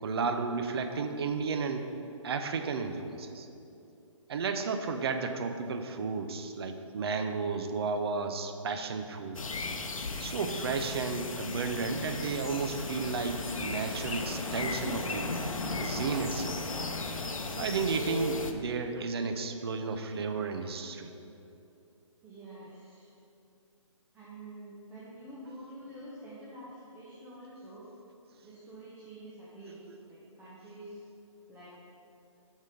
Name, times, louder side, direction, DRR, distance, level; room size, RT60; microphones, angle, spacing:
voice 1, 0.0-1.9 2.2-3.5 4.3-9.4 10.2-15.3 15.8-16.6 17.5-21.1 29.9-30.0, right 4 dB, 50° right, 7 dB, 0.7 m, -33 dB
sound 1, 9.3-18.5, left 3 dB, 85° left, 0.7 m, -36 dB
sound 2, 11.6-16.0, left 2 dB, 45° left, 1.1 m, -49 dB
voice 2, 22.2-23.1 24.1-27.8 28.4-31.0 31.5-31.8, right 1 dB, 10° right, -9 dB, 1.0 m, -47 dB
6.9 x 6.4 x 5.3 m, 2.7 s
hypercardioid pair, 145°, 17 cm